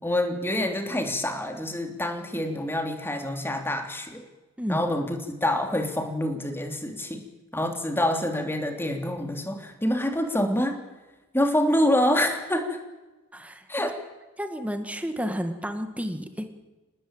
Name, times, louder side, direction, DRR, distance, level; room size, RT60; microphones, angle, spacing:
voice 1, 0.0-4.2 4.7-7.2 7.5-10.8 11.3-12.8 13.7-13.9, left 1 dB, 10° left, 4 dB, 3.2 m, -26 dB
voice 2, 13.3-13.7 14.4-16.6, equal, 5° right, 7 dB, 2.0 m, -31 dB
26.5 x 19.5 x 9.0 m, 1.1 s
head